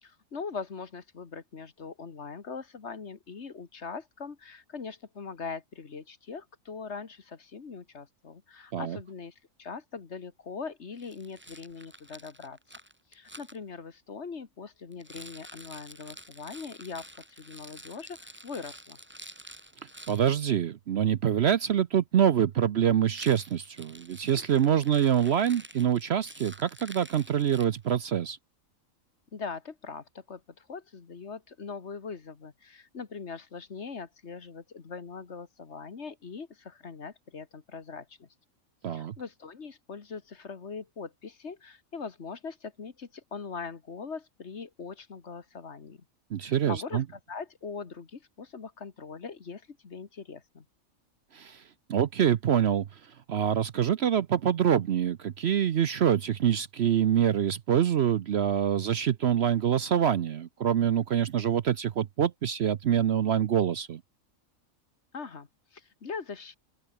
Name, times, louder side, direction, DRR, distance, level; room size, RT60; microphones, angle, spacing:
voice 1, 0.0-12.6 13.1-19.0 29.3-38.3 38.9-46.0 46.4-50.7 65.1-66.6, left 5 dB, 55° left, 1.9 m, -41 dB
Rattle, 11.0-13.6 14.9-20.3 23.0-28.0, right 1 dB, 10° right, 2.4 m, -49 dB
voice 2, 20.1-28.4 38.8-39.1 46.3-47.0 51.3-51.6 51.9-52.9 53.3-64.0, right 9 dB, 55° right, 0.8 m, -25 dB
open air
omnidirectional pair, 1.4 m